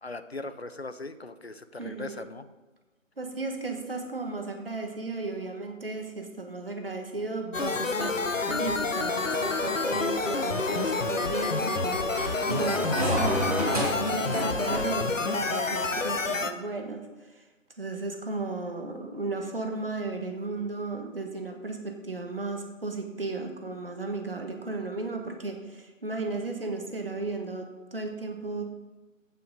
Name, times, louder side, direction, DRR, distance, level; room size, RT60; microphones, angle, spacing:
voice 1, 0.0-2.5, left 2 dB, 50° left, 12 dB, 0.7 m, -39 dB
voice 2, 1.8-2.2 3.2-17.5 17.8-28.6, right 3 dB, 45° right, 4 dB, 1.4 m, -35 dB
sound 1, 7.5-16.5, left 3 dB, 70° left, 1.0 m, -28 dB
sound 2, 9.2-15.0, equal, 30° right, 2.2 m, -33 dB
15.5 x 5.9 x 5.3 m, 1.2 s
figure-of-eight pair, 175°, 40 cm